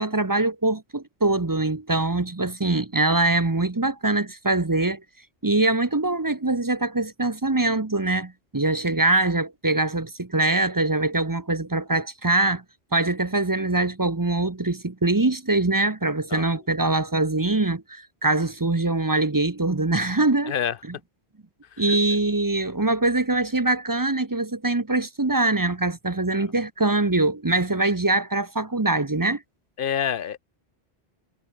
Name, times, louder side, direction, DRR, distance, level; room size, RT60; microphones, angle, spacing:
voice 1, 0.0-5.0 5.4-12.6 12.9-20.5 21.8-29.4, right 2 dB, 20° right, 0.8 m, -23 dB
voice 2, 20.5-20.8 21.8-22.0 26.3-26.5 29.8-30.4, left 8 dB, 60° left, 0.8 m, -27 dB
omnidirectional pair, 1.1 m